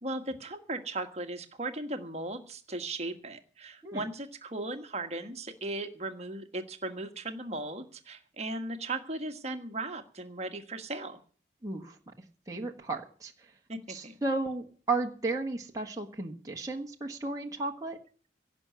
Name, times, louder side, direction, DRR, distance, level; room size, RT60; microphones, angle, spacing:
voice 1, 0.0-11.2 13.7-14.2, right 2 dB, 35° right, 7 dB, 1.5 m, -37 dB
voice 2, 11.6-11.9 12.5-13.3 13.9-18.0, right 3 dB, 20° right, 0 dB, 1.4 m, -34 dB
17.0 x 6.3 x 9.4 m, 0.43 s
head